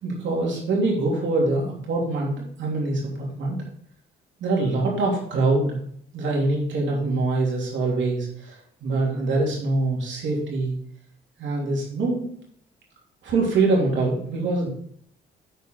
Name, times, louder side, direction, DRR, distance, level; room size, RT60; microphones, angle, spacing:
voice 1, 0.0-3.6 4.4-5.8 6.1-10.7 11.4-12.3 13.2-14.7, right 2 dB, 70° right, -2 dB, 3.3 m, -24 dB
12.0 x 5.0 x 4.0 m, 0.63 s
cardioid pair, 90°, 20 cm